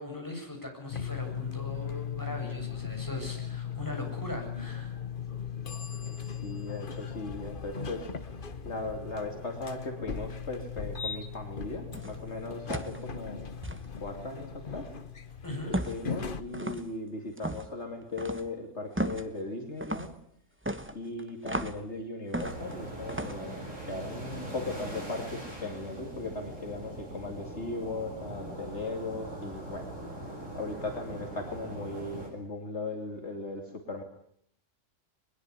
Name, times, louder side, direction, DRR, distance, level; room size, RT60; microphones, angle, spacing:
voice 1, 0.0-4.9 15.4-15.8, left 1 dB, 15° left, 1 dB, 7.6 m, -39 dB
sound 1, 0.9-16.4, left 7 dB, 45° left, 1.3 m, -38 dB
voice 2, 6.3-8.1 8.6-13.5 14.0-14.9 15.7-20.2 20.9-34.0, left 2 dB, 60° left, 3 dB, 3.0 m, -38 dB
sound 2, 11.9-12.2 12.7-13.0 13.6-13.8 15.7-16.1 16.5-16.9 17.4-17.7 18.2-18.5 19.0-19.3 19.8-20.1 20.6-21.8 22.3-22.7 23.1-23.4, right 1 dB, 10° right, 1.2 m, -34 dB
sound 3, 22.4-32.3, right 1 dB, 75° right, 8.3 m, -41 dB
22.0 x 21.5 x 9.8 m, 0.68 s
omnidirectional pair, 1.3 m